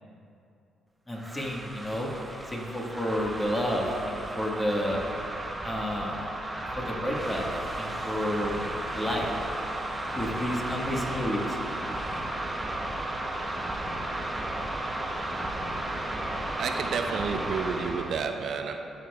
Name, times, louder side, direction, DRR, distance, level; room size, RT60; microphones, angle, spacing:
voice 1, 1.1-2.1 2.5-5.0 5.6-6.3 6.7-7.4 7.8-8.6 8.9-9.3 10.1-11.6, equal, 20° left, -2 dB, 1.4 m, -30 dB
sound 1, 1.1-18.2, right 1 dB, 15° right, 0.8 m, -34 dB
voice 2, 16.6-18.8, right 6 dB, 65° right, 6 dB, 0.4 m, -30 dB
12.0 x 6.5 x 2.3 m, 2.7 s
cardioid pair, 90°, 0 cm